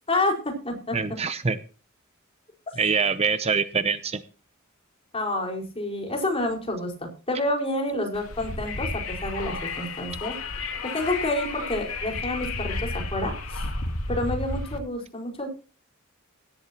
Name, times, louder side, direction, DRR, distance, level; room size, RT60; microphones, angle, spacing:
voice 1, 0.1-1.0 5.1-10.4 10.8-13.6 14.1-15.5, left 1 dB, 30° left, 1 dB, 4.9 m, -29 dB
voice 2, 0.9-1.6 2.8-4.2, right 5 dB, 30° right, 12 dB, 0.7 m, -24 dB
Wind, 8.1-14.8, left 3 dB, 75° left, 2.6 m, -32 dB
17.5 x 12.0 x 2.9 m, 0.36 s
head